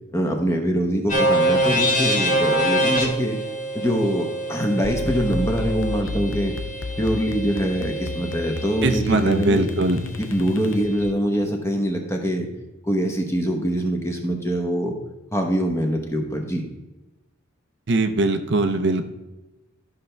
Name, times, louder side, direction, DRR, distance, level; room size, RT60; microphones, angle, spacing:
voice 1, 0.1-3.4 3.7-6.5 7.0-9.7 10.2-12.5 12.8-14.9 15.3-16.6, equal, 15° left, 2 dB, 1.1 m, -24 dB
sound 1, 1.1-9.0, right 1 dB, 40° left, 2.2 m, -25 dB
sound 2, 4.8-11.2, left 3 dB, 65° left, 0.7 m, -32 dB
voice 2, 8.8-10.0 17.9-19.0, right 2 dB, 55° right, 7 dB, 0.6 m, -21 dB
13.0 x 5.8 x 3.3 m, 1.1 s
head